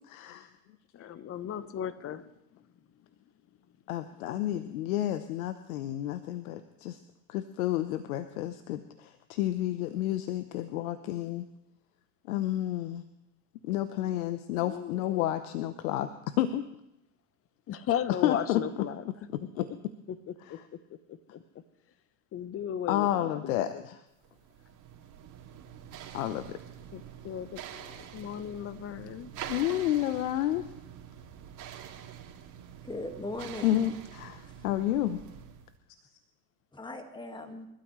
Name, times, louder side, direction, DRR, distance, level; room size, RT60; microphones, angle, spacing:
voice 1, 0.1-0.5 3.9-7.0 7.3-11.4 12.3-13.0 13.6-16.1 16.4-16.7 18.2-18.6 19.3-19.7 22.9-24.0 26.1-26.6 29.5-30.7 33.6-35.2, left 13 dB, 70° left, 11 dB, 1.0 m, -30 dB
voice 2, 0.9-2.3 4.3-4.7 14.6-15.4 17.7-19.0 19.6-19.8 20.1-20.6 20.9-21.6 22.3-23.8 26.9-29.3, left 10 dB, 30° left, 15 dB, 1.0 m, -36 dB
sound 1, 24.2-35.7, right 9 dB, 40° right, 2.5 m, -46 dB
voice 3, 32.8-33.9 36.7-37.7, left 2 dB, 10° left, 6 dB, 1.9 m, -39 dB
28.5 x 12.5 x 3.2 m, 0.85 s
hypercardioid pair, 105°, 44 cm